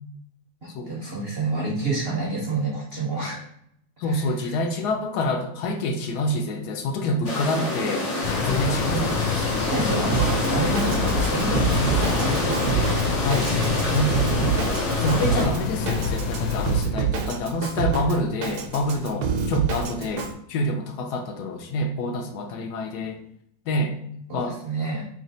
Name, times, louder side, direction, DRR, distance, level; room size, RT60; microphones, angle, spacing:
voice 1, 0.6-3.5 4.0-4.5 9.6-12.7 13.6-14.4 18.1-18.2 24.3-25.0, right 3 dB, 55° right, -4 dB, 0.6 m, -29 dB
voice 2, 4.0-8.1 8.4-9.7 10.8-10.9 11.8-12.2 13.0-14.1 15.0-23.2 23.7-24.0 24.3-24.6, left 1 dB, 75° left, 4 dB, 1.0 m, -27 dB
sound 1, 7.2-15.5, left 1 dB, 50° left, 0.4 m, -28 dB
sound 2, 8.2-16.8, left 5 dB, 90° left, 1.4 m, -27 dB
Drum kit, 10.1-20.3, right 7 dB, 70° right, 1.0 m, -28 dB
3.2 x 2.8 x 4.0 m, 0.73 s
omnidirectional pair, 2.1 m